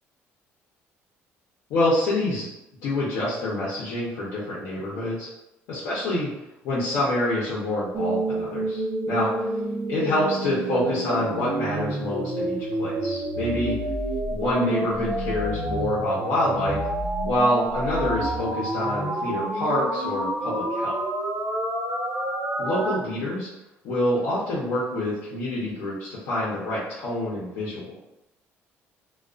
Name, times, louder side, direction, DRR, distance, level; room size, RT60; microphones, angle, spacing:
voice 1, 1.7-2.5 2.8-5.3 5.7-6.3 6.6-9.3 9.9-13.8 14.3-16.8 17.2-20.9 22.6-23.5 23.8-28.0, left 1 dB, 85° left, -7 dB, 0.7 m, -26 dB
sound 1, 7.9-23.0, right 1 dB, 30° right, 0.7 m, -28 dB
2.4 x 2.3 x 2.3 m, 0.89 s
cardioid pair, 175°, 5 cm